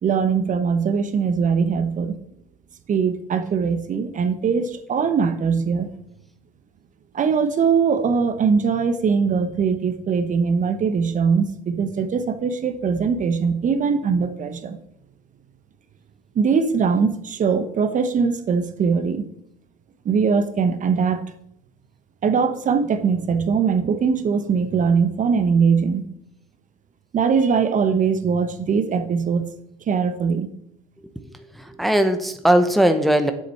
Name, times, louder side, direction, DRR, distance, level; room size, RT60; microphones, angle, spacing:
voice 1, 0.0-2.1 2.9-5.9 7.1-14.8 16.3-19.3 20.0-21.2 22.2-26.0 27.1-29.5 29.9-30.5, right 6 dB, 40° right, 10 dB, 0.9 m, -21 dB
voice 2, 31.2-33.3, right 1 dB, ahead, 8 dB, 0.9 m, -19 dB
7.3 x 7.2 x 5.7 m, 0.78 s
supercardioid pair, 85°, 19 cm